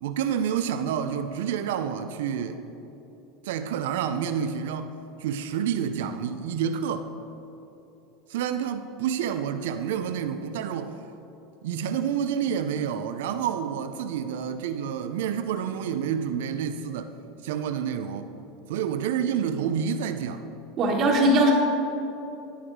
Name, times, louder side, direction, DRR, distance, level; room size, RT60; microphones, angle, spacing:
voice 1, 0.0-2.6 3.4-4.9 5.2-7.1 8.3-10.9 11.6-17.1 17.4-18.3 18.7-20.5, right 8 dB, 80° right, 8 dB, 0.6 m, -28 dB
voice 2, 20.8-21.5, right 1 dB, 45° right, -5 dB, 1.5 m, -19 dB
11.5 x 9.8 x 4.8 m, 2.9 s
supercardioid pair, 120°, 0 cm